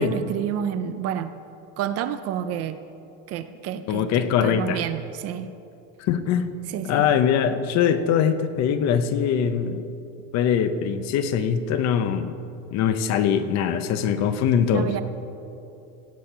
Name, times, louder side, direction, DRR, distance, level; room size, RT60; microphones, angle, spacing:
voice 1, 0.0-1.3 1.8-2.8 3.3-5.5 6.7-7.1 14.7-15.0, right 9 dB, 40° right, 11 dB, 0.5 m, -29 dB
voice 2, 3.9-4.8 6.0-6.5 6.9-9.8 10.3-12.3 12.7-14.9, left 8 dB, 45° left, 11 dB, 0.7 m, -22 dB
17.0 x 8.3 x 5.5 m, 2.7 s
cardioid pair, 155°, 39 cm